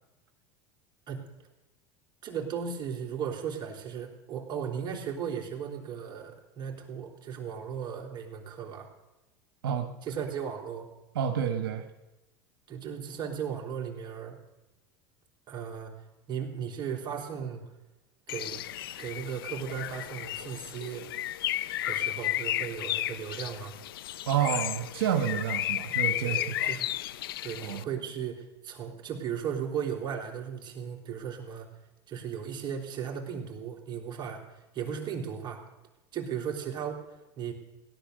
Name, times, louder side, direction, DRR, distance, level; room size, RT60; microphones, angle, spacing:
voice 1, 2.2-8.9 10.0-10.9 12.7-14.4 15.5-15.9 16.3-17.6 18.3-18.6 19.0-21.1 21.8-23.7 26.2-26.9 27.4-31.7 32.1-35.6 36.1-37.5, right 7 dB, 40° right, 1 dB, 3.5 m, -36 dB
voice 2, 11.1-11.9 24.3-26.7 27.6-27.8, right 8 dB, 85° right, 6 dB, 1.2 m, -29 dB
Bird, 18.3-27.8, left 14 dB, 90° left, 0.5 m, -33 dB
17.5 x 11.0 x 6.6 m, 1.0 s
supercardioid pair, 110°, 12 cm